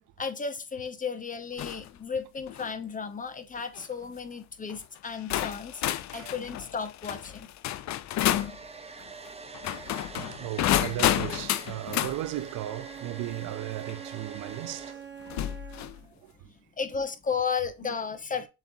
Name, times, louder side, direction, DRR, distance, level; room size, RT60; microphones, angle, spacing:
voice 1, 0.2-5.8 6.1-7.5 16.0-16.1 16.4-18.5, left 6 dB, 25° left, 0.8 m, -34 dB
sound 1, 1.6-1.9 2.4-2.7 3.6-3.8 4.7-4.8 5.3-8.6 9.5-12.2 13.9-14.0 15.3-16.0, left 13 dB, 70° left, 0.4 m, -30 dB
Domestic sounds home sounds, 8.3-14.9, right 4 dB, 20° right, 0.6 m, -45 dB
voice 2, 10.1-15.1 15.6-16.5 17.8-17.9, right 14 dB, 80° right, 0.5 m, -36 dB
Bowed string instrument, 12.3-16.1, right 8 dB, 35° right, 1.1 m, -45 dB
7.1 x 2.7 x 2.7 m
cardioid pair, 90°, 30 cm